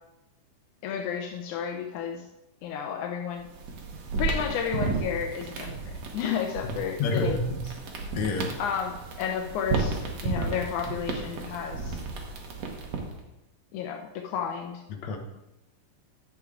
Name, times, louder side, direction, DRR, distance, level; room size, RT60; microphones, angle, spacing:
voice 1, 0.8-2.2 2.6-3.5 4.2-5.8 6.1-7.4 8.6-12.0 13.7-14.8, left 7 dB, 85° left, 3 dB, 1.7 m, -32 dB
sound 1, 3.4-13.2, right 4 dB, 60° right, 2.0 m, -33 dB
voice 2, 7.0-7.6 8.1-8.5 14.9-15.2, left 3 dB, 65° left, 2 dB, 1.9 m, -28 dB
11.5 x 7.9 x 3.7 m, 0.92 s
omnidirectional pair, 4.4 m